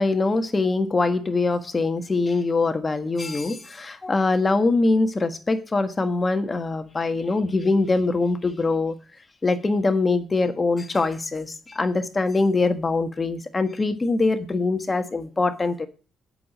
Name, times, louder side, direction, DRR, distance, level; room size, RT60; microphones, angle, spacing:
voice 1, 0.0-8.9 9.4-15.9, left 3 dB, 25° left, 1.5 m, -23 dB
8.3 x 6.8 x 7.6 m
cardioid pair, 90°, 0 cm